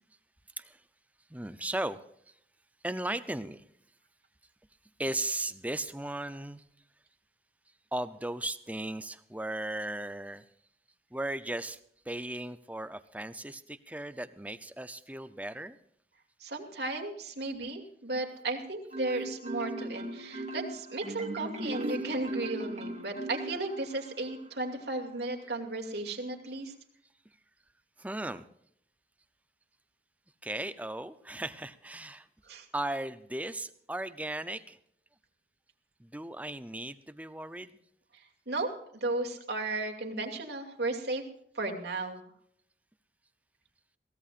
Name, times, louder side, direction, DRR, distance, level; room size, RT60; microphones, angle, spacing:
voice 1, 1.3-2.0 2.8-3.6 5.0-6.6 7.9-10.4 11.1-11.8 12.1-15.8 28.0-28.4 30.4-32.3 32.7-34.8 36.0-37.8, right 1 dB, 10° right, 12 dB, 0.6 m, -36 dB
voice 2, 16.4-26.7 32.5-32.7 38.1-41.2 41.5-42.2, right 2 dB, 70° right, 3 dB, 2.6 m, -35 dB
Marimba xylophone, 18.9-24.1, right 1 dB, 40° right, 1.9 m, -38 dB
22.5 x 17.0 x 2.5 m, 0.69 s
head